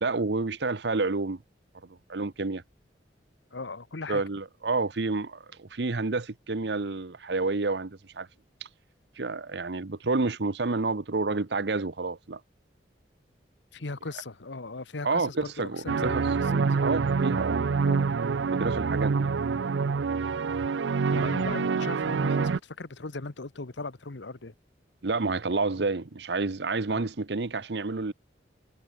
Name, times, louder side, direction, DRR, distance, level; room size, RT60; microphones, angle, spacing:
voice 1, 0.0-1.4 2.1-2.6 4.1-8.3 9.2-12.4 15.0-16.2 16.5-17.7 18.5-19.3 21.1-21.3 25.0-28.1, right 3 dB, 65° right, 0.9 m, -29 dB
voice 2, 3.5-4.2 13.7-16.6 17.8-18.0 21.1-24.5 26.9-27.0, left 3 dB, 90° left, 1.2 m, -38 dB
sound 1, 15.9-22.6, right 5 dB, 85° right, 0.5 m, -26 dB
head